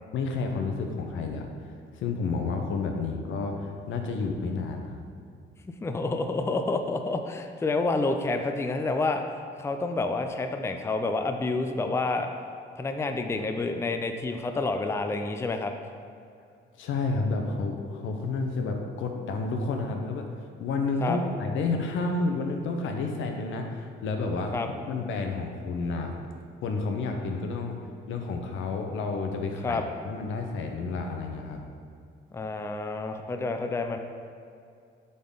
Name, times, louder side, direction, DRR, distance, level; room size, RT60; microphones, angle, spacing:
voice 1, 0.1-1.5 2.0-5.0 16.8-20.3 20.6-24.6 24.9-26.1 26.6-27.8 28.1-31.6, left 3 dB, 80° left, 4 dB, 0.8 m, -30 dB
voice 2, 5.8-9.2 9.6-12.3 12.8-15.7 21.0-21.2 24.5-24.7 29.6-29.8 32.3-34.0, left 3 dB, 15° left, 6 dB, 0.4 m, -28 dB
7.8 x 3.7 x 3.9 m, 2.4 s
cardioid pair, 90°, 20 cm